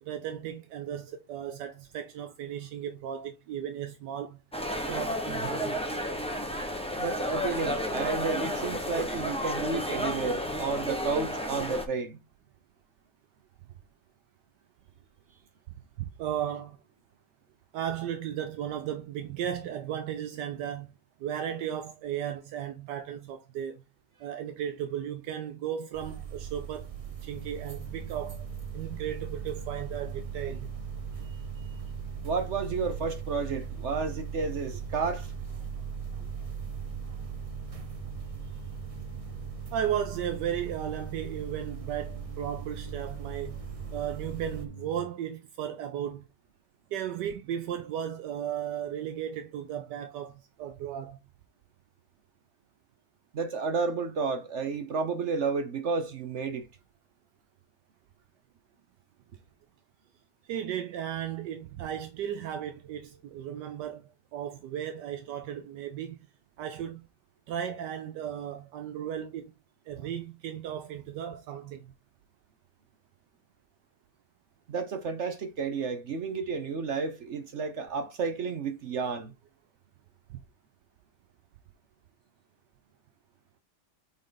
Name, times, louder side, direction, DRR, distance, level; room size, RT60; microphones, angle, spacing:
voice 1, 0.0-4.4 4.8-5.8 16.0-16.8 17.7-20.9 21.2-23.8 24.2-26.9 27.2-28.4 28.7-30.7 39.7-43.6 43.9-46.3 46.9-51.2 60.4-66.2 66.6-67.0 67.5-69.5 69.9-71.9 80.3-80.4, right 9 dB, 80° right, 1.3 m, -35 dB
sound 1, 4.5-11.8, equal, 5° left, 0.7 m, -32 dB
voice 2, 7.0-12.2 32.2-35.3 53.3-56.7 74.7-79.3, right 4 dB, 55° right, 0.9 m, -31 dB
sound 2, 25.9-44.6, right 7 dB, 35° right, 0.5 m, -39 dB
sound 3, 27.3-45.1, right 4 dB, 60° left, 1.8 m, -45 dB
7.6 x 3.7 x 3.8 m
omnidirectional pair, 1.8 m